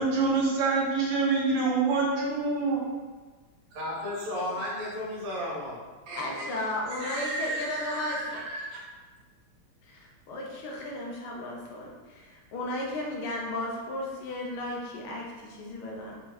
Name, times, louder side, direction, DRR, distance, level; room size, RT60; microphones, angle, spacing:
voice 1, 0.0-2.8, right 4 dB, 55° right, -4 dB, 1.4 m, -25 dB
voice 2, 3.7-6.6 6.9-8.8, equal, 40° right, -6 dB, 0.8 m, -35 dB
voice 3, 6.2-8.2 9.9-16.2, left 1 dB, 80° left, -1 dB, 1.6 m, -35 dB
4.9 x 3.6 x 2.9 m, 1.4 s
omnidirectional pair, 2.4 m